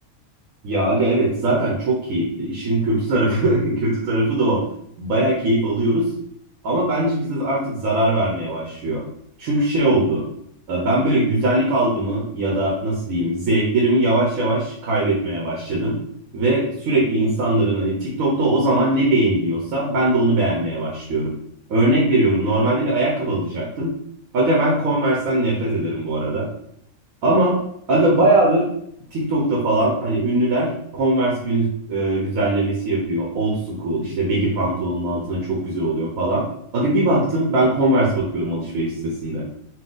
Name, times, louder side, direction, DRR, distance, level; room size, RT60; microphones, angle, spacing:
voice 1, 0.6-4.6 5.0-6.1 6.6-9.0 9.4-10.2 10.7-16.0 16.3-21.3 21.7-23.9 24.3-26.5 27.2-27.6 27.9-28.7 29.1-36.5 36.7-39.4, right 1 dB, 85° right, -3 dB, 1.2 m, -20 dB
4.4 x 2.2 x 3.8 m, 0.73 s
omnidirectional pair, 1.4 m